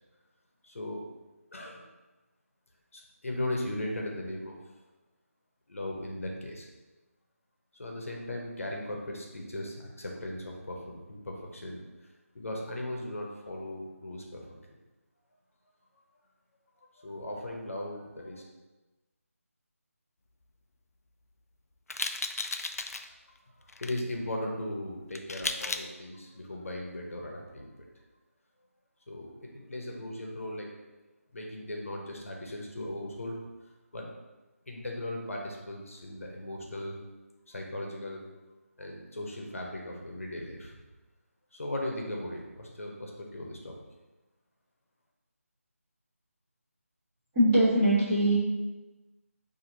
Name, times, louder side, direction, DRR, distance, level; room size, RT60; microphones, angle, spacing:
voice 1, 0.6-1.1 1.5-1.8 2.9-4.6 5.7-6.7 7.8-11.8 12.3-14.5 16.9-18.4 23.8-27.9 29.1-30.7 31.3-33.4 33.9-34.1 34.7-37.0 37.5-38.2 38.8-40.8 41.5-43.8, left 1 dB, 60° left, 0 dB, 0.9 m, -37 dB
sound 1, 21.9-23.1 23.7-24.0 25.1-25.9, left 3 dB, 80° left, 0.4 m, -34 dB
voice 2, 47.3-48.3, right 1 dB, 15° right, -12 dB, 1.0 m, -22 dB
4.4 x 2.7 x 3.9 m, 1.1 s
figure-of-eight pair, 175°, 8 cm